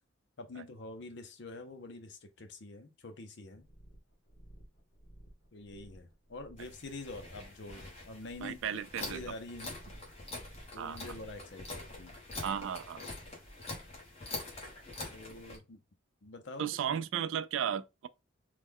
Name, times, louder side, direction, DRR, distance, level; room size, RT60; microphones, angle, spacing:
voice 1, 0.4-3.6 5.5-8.6 9.0-9.7 10.7-12.2 15.1-15.8 16.2-16.8, left 2 dB, 60° left, 0.6 m, -46 dB
sound 1, 3.6-14.1, right 1 dB, 75° left, 1.1 m, -57 dB
sound 2, 6.6-15.6, left 2 dB, 30° left, 1.0 m, -45 dB
voice 2, 8.4-9.2 10.8-11.0 12.4-13.0 16.6-18.1, right 8 dB, 70° right, 0.3 m, -35 dB
3.1 x 2.2 x 3.5 m
head